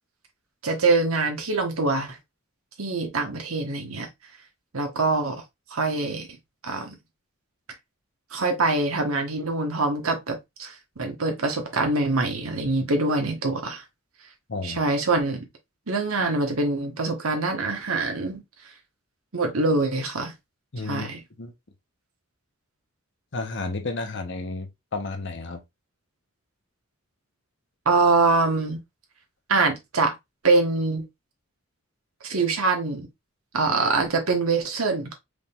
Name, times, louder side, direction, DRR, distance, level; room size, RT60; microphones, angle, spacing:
voice 1, 0.6-2.2 2.8-4.1 4.7-5.4 5.7-6.3 6.6-6.9 8.3-13.8 14.6-15.5 15.9-18.4 19.3-20.3 20.8-21.2 27.8-28.8 29.5-30.1 30.4-31.1 32.2-33.1 33.5-35.1, right 3 dB, 80° right, 1.4 m, -24 dB
voice 2, 14.5-14.8 20.7-21.1 21.4-21.5 23.3-25.6, left 3 dB, 55° left, 0.9 m, -32 dB
5.1 x 3.7 x 2.5 m
head